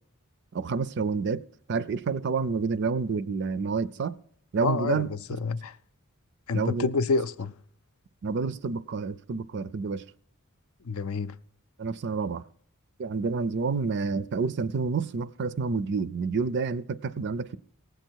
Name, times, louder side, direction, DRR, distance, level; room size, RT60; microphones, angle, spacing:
voice 1, 0.5-1.4 1.7-4.1 4.5-5.1 6.5-6.9 8.2-10.0 11.8-12.4 13.0-17.6, right 4 dB, 50° right, 0.4 m, -29 dB
voice 2, 4.6-5.7 6.5-7.5 10.9-11.3, left 4 dB, 70° left, 0.5 m, -28 dB
17.5 x 7.8 x 4.6 m
head